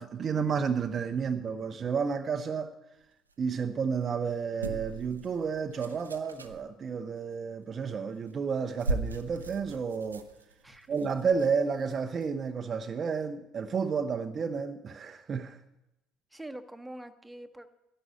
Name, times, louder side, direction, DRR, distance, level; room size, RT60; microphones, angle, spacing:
voice 1, 0.0-2.7 3.4-10.3 10.9-15.6, right 6 dB, 40° right, 0.7 m, -31 dB
sound 1, 4.6-6.7 8.1-8.3 8.6-12.3 12.8-12.9, right 2 dB, 90° right, 0.6 m, -38 dB
voice 2, 10.6-11.0 16.3-17.7, right 1 dB, 5° right, 1.2 m, -44 dB
12.5 x 11.0 x 7.7 m
figure-of-eight pair, 55°, 0 cm